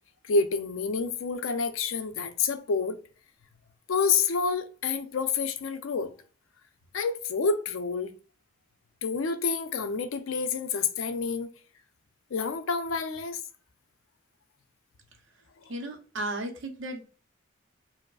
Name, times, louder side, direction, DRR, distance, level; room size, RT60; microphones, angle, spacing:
voice 1, 0.2-3.0 3.9-6.1 6.9-8.1 9.0-11.5 12.3-13.4, left 5 dB, 90° left, 0.4 m, -28 dB
voice 2, 15.7-17.0, right 1 dB, 70° right, 0.6 m, -34 dB
4.6 x 2.0 x 2.3 m
head